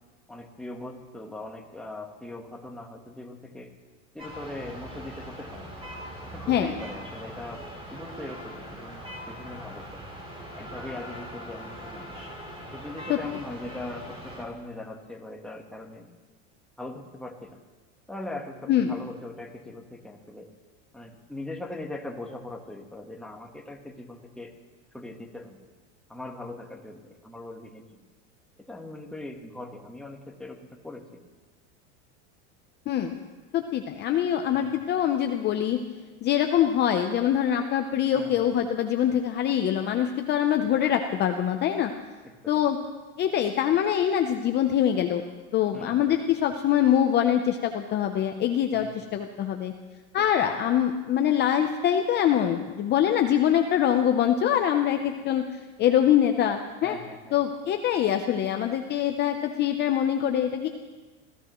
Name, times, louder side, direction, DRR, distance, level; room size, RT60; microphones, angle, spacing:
voice 1, 0.3-3.7 4.1-5.7 6.2-10.0 10.5-12.1 12.7-16.1 16.8-17.6 18.1-20.5 20.9-24.5 24.9-25.6 26.1-28.0 28.6-31.2 34.5-34.7 38.1-38.5 42.2-42.6 45.7-46.1 48.7-49.0 50.2-50.3 56.8-57.4, left 2 dB, ahead, 2 dB, 1.2 m, -40 dB
sound 1, 4.2-14.4, equal, 15° right, 3.3 m, -41 dB
voice 2, 32.9-33.2 33.5-35.8 36.2-41.9 42.5-42.8 43.2-45.2 45.5-49.7 50.1-57.0 57.3-60.7, left 10 dB, 30° left, 5 dB, 0.7 m, -24 dB
27.0 x 15.0 x 3.1 m, 1.3 s
supercardioid pair, 140°, 35 cm